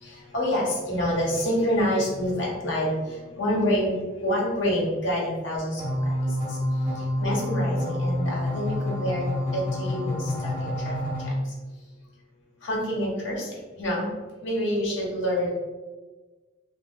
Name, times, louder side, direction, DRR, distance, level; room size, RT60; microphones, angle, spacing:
voice 1, 0.0-6.6 6.9-9.2 9.5-11.0 11.2-11.3 12.6-14.1 14.4-15.5, equal, 70° left, -3 dB, 1.0 m, -27 dB
sound 1, 5.8-11.3, left 1 dB, 10° right, 1.2 m, -28 dB
2.7 x 2.4 x 3.6 m, 1.3 s
head